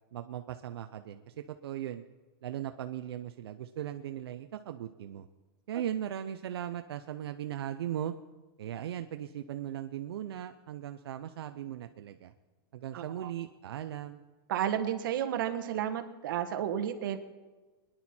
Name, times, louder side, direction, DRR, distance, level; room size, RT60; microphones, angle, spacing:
voice 1, 0.1-2.0 2.4-5.3 5.7-8.1 8.6-12.3 12.7-14.2, right 11 dB, 85° right, 8 dB, 0.7 m, -38 dB
voice 2, 12.9-13.3 14.5-17.2, right 10 dB, 60° right, 7 dB, 1.4 m, -32 dB
23.0 x 10.5 x 4.4 m, 1.2 s
supercardioid pair, 175°, 13 cm